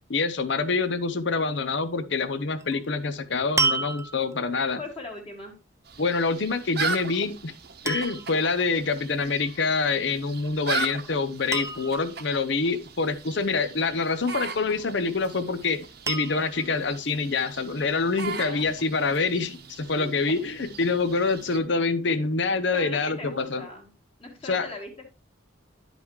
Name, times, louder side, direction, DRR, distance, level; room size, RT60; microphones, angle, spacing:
voice 1, 0.1-4.8 6.0-7.5 7.8-23.7 24.4-24.7, left 4 dB, 60° left, 12 dB, 0.7 m, -26 dB
sound 1, 2.6-2.9 3.6-4.5 6.9-7.2 7.9-8.4 10.4-10.7 11.0-11.1 11.5-12.2 14.5-15.1 16.1-16.7 17.4-17.5, right 4 dB, 15° right, 0.4 m, -30 dB
voice 2, 4.8-5.5 18.2-18.6 19.9-20.2 22.7-23.9 24.2-25.1, left 2 dB, 25° left, 2 dB, 1.7 m, -39 dB
sound 2, 5.8-21.6, right 4 dB, 50° right, 0.9 m, -38 dB
11.0 x 5.4 x 3.1 m, 0.30 s
head